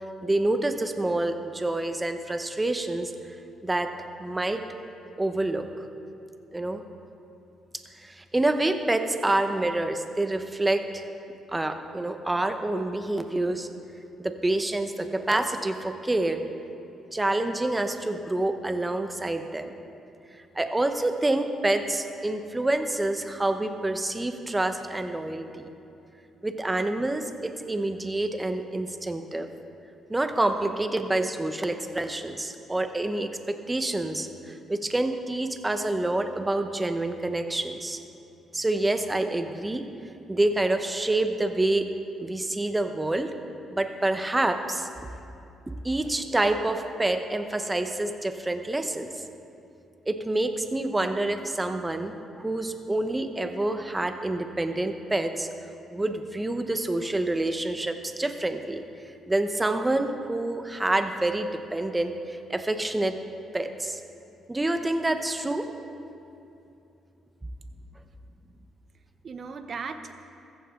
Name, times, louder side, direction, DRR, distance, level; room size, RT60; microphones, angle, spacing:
voice 1, 0.2-3.1 3.6-3.9 4.2-4.6 5.2-5.7 6.5-6.8 8.0-11.1 11.5-13.7 14.2-16.4 17.1-19.7 20.5-25.7 26.4-29.5 30.1-38.0 38.5-39.9 40.3-41.9 42.2-43.3 43.7-44.9 45.8-49.3 50.1-55.5 55.9-58.8 59.3-63.2 63.5-64.0 64.5-65.7, right 2 dB, 15° right, 7 dB, 1.0 m, -27 dB
voice 2, 67.7-68.1 68.4-68.7 69.2-70.2, right 5 dB, 50° right, 8 dB, 0.9 m, -39 dB
14.5 x 14.5 x 3.8 m, 2.8 s
cardioid pair, 90°, 0 cm